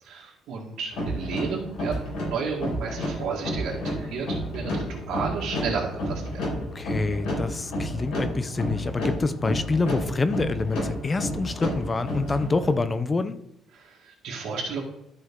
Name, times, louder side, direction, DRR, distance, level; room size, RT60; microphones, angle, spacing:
voice 1, 0.0-6.4 13.7-14.8, right 5 dB, 70° right, -3 dB, 1.8 m, -32 dB
sound 1, 0.9-12.8, equal, 75° left, 3.6 m, -31 dB
voice 2, 6.7-13.4, left 3 dB, 15° left, 12 dB, 0.5 m, -26 dB
12.5 x 5.4 x 3.7 m, 0.82 s
cardioid pair, 180°, 0 cm